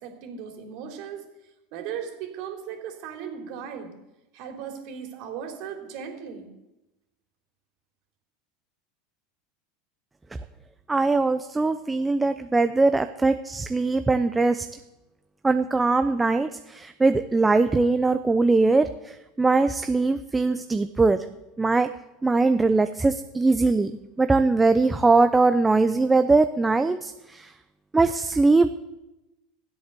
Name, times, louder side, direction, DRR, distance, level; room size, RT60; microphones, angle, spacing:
voice 1, 0.0-1.2 1.7-3.9 4.3-6.5, right 8 dB, 65° right, 3 dB, 3.3 m, -37 dB
voice 2, 10.9-14.7 15.4-21.3 21.6-21.9 22.2-23.9 24.2-27.5 27.9-28.7, right 3 dB, 15° right, 9 dB, 0.7 m, -21 dB
13.5 x 8.0 x 6.8 m, 0.98 s
hypercardioid pair, 100°, 0 cm